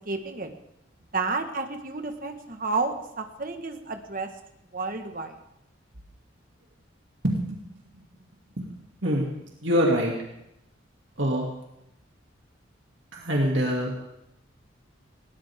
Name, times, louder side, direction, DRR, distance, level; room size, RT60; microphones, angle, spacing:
voice 1, 0.0-0.5 1.1-4.3 4.7-5.3, right 4 dB, 45° right, 6 dB, 1.6 m, -31 dB
voice 2, 7.2-7.6 8.6-8.7 9.0-9.3 9.6-10.1 11.2-11.5 13.1-13.9, equal, 65° right, -2 dB, 2.7 m, -24 dB
20.5 x 18.0 x 3.7 m, 0.83 s
head